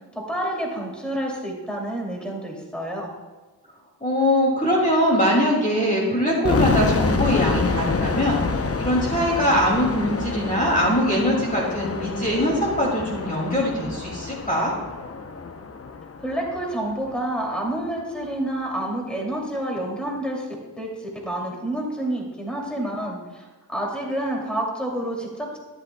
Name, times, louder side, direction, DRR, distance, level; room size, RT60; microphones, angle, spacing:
voice 1, 0.1-3.1 16.2-25.6, right 1 dB, ahead, -2 dB, 2.6 m, -29 dB
voice 2, 4.0-14.7, equal, 20° left, -4 dB, 2.4 m, -22 dB
sound 1, 6.4-17.3, left 4 dB, 35° left, 0.7 m, -27 dB
13.5 x 10.5 x 2.3 m, 1.3 s
wide cardioid pair, 65°, 40 cm